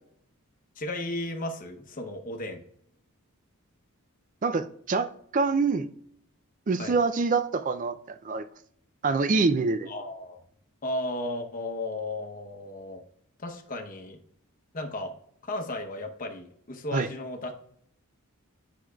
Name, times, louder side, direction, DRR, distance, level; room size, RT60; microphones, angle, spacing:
voice 1, 0.8-2.6 6.8-7.0 9.9-10.4 10.8-13.0 13.4-14.2 14.7-15.1 15.4-17.5, left 1 dB, 35° left, 0.8 m, -34 dB
voice 2, 4.4-5.9 6.7-8.4 9.0-9.9 16.9-17.1, right 4 dB, 35° right, 0.3 m, -25 dB
8.4 x 6.1 x 2.3 m
head